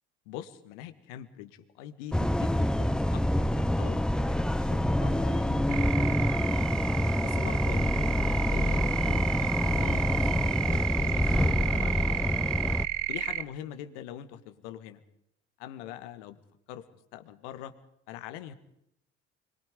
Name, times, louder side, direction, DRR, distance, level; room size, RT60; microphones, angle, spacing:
voice 1, 0.3-6.7 7.2-10.3 10.7-12.3 13.1-15.0 15.6-16.4 16.7-16.9 17.1-17.7 18.1-18.5, left 11 dB, 75° left, 11 dB, 2.1 m, -43 dB
sound 1, 2.1-12.9, left 1 dB, ahead, 0.8 m, -26 dB
sound 2, 5.7-13.4, right 16 dB, 75° right, 1.1 m, -32 dB
26.0 x 22.5 x 5.2 m, 0.77 s
hypercardioid pair, 60°, 35 cm